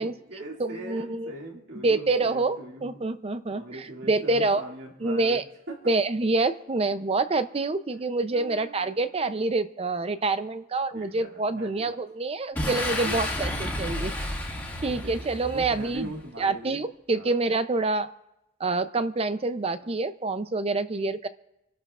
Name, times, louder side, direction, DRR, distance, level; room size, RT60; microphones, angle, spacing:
voice 1, 0.0-3.0 3.5-5.4 5.7-5.9 8.3-8.9 10.9-11.9 13.0-13.2 13.5-13.7 14.6-15.1 15.5-16.9 17.1-17.4 19.8-20.0, right 1 dB, 65° right, -1 dB, 2.3 m, -41 dB
voice 2, 0.6-1.3 1.8-4.6 5.0-5.4 5.9-14.1 14.4-14.5 14.8-16.1 16.4-18.1 18.6-21.3, right 3 dB, 30° right, 11 dB, 0.6 m, -27 dB
Boom, 12.5-16.2, left 1 dB, 10° left, 1.9 m, -31 dB
28.0 x 12.0 x 2.5 m, 0.89 s
head